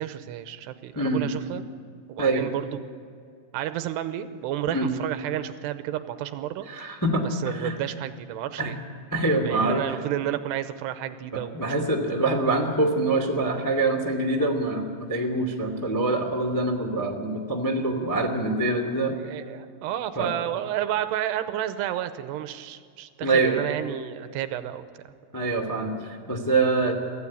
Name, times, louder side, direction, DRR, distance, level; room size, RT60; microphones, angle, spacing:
voice 1, 0.0-1.6 2.1-2.9 3.5-6.7 7.3-8.8 9.4-11.9 19.1-24.8, right 12 dB, 80° right, 10 dB, 2.8 m, -31 dB
voice 2, 6.7-7.7 8.6-8.7 9.1-9.8 11.3-19.1 20.1-20.3 23.2-23.6 25.3-26.9, right 2 dB, 15° left, 1 dB, 0.6 m, -25 dB
24.5 x 15.0 x 8.5 m, 2.3 s
omnidirectional pair, 5.1 m